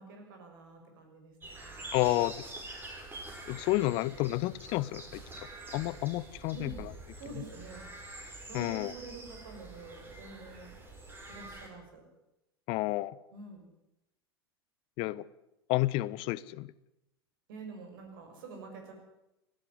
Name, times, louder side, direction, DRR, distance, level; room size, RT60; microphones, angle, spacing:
voice 1, 0.0-1.8 6.5-6.8 7.1-7.9 8.5-10.8 11.3-12.0 13.3-13.7 17.5-18.9, right 3 dB, 55° right, 4 dB, 6.3 m, -47 dB
sound 1, 1.4-11.7, right 2 dB, 15° right, 5.2 m, -46 dB
voice 2, 1.9-2.4 3.5-5.2 5.7-6.9 8.5-8.9 12.7-13.2 15.0-15.3 15.7-16.7, left 18 dB, 40° left, 20 dB, 0.7 m, -30 dB
18.0 x 15.0 x 9.7 m, 0.88 s
figure-of-eight pair, 85°, 13 cm